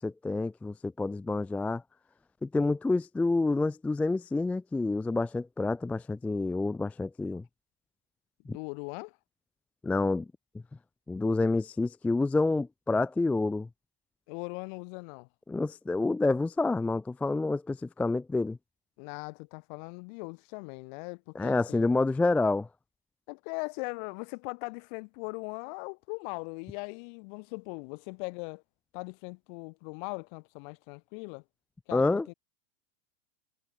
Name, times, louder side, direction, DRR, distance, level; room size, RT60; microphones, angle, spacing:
voice 1, 0.0-1.8 2.4-7.4 8.5-8.6 9.8-10.3 11.1-13.7 15.5-18.6 21.4-22.7 31.9-32.3, left 3 dB, 5° left, 0.4 m, -28 dB
voice 2, 8.5-9.2 14.3-15.3 19.0-21.9 23.3-28.6 28.9-31.4 31.9-32.3, left 37 dB, 50° left, 2.7 m, -40 dB
hypercardioid pair, 110°, 31 cm